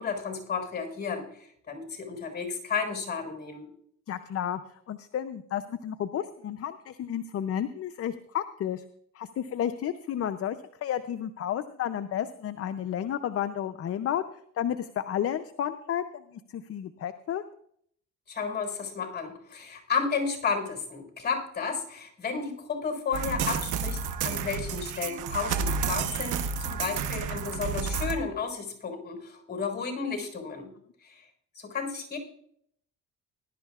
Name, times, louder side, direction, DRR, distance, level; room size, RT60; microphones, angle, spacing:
voice 1, 0.0-3.7 18.3-30.7 31.0-31.3 31.5-32.2, left 5 dB, 35° left, 3 dB, 4.3 m, -32 dB
voice 2, 4.1-8.8 9.1-14.2 14.6-17.4, left 10 dB, 50° left, 10 dB, 0.6 m, -32 dB
sound 1, 23.1-28.2, right 6 dB, 90° right, 1.0 m, -31 dB
19.5 x 11.5 x 2.4 m, 0.68 s
cardioid pair, 90°, 30 cm